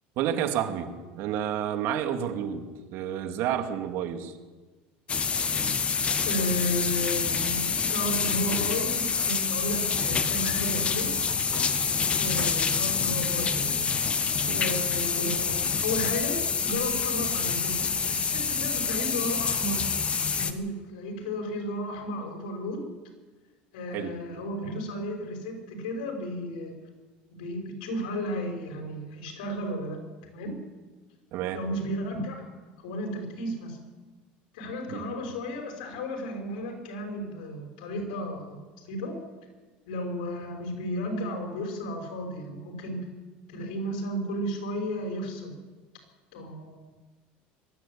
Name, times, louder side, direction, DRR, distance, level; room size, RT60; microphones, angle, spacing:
voice 1, 0.2-4.3 14.5-14.6 23.9-24.2 31.3-31.6 34.9-35.0, right 9 dB, 60° right, 6 dB, 2.3 m, -30 dB
sound 1, 5.1-20.5, left 6 dB, 25° left, 1.5 m, -27 dB
voice 2, 6.2-7.6 7.9-11.1 12.2-13.9 14.5-17.8 18.1-19.9 20.4-22.9 23.7-26.7 27.3-30.6 31.5-32.5 32.8-33.8 34.5-39.2 39.9-43.1 43.5-45.5 46.3-46.8, left 1 dB, 85° left, 4 dB, 5.7 m, -33 dB
22.0 x 13.5 x 8.7 m, 1.3 s
supercardioid pair, 125°, 5 cm